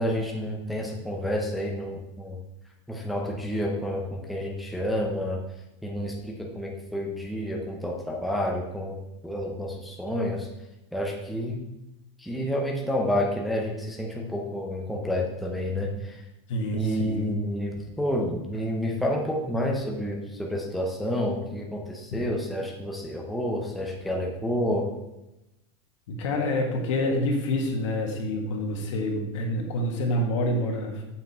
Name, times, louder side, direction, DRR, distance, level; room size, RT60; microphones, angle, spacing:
voice 1, 0.0-2.4 2.9-5.4 5.8-9.0 9.2-10.5 10.9-11.6 12.2-16.2 16.7-24.9, equal, ahead, -1 dB, 0.7 m, -29 dB
voice 2, 16.5-17.3 26.1-31.0, left 1 dB, 75° left, 1 dB, 1.8 m, -27 dB
7.8 x 5.9 x 4.3 m, 0.93 s
supercardioid pair, 170°, 16 cm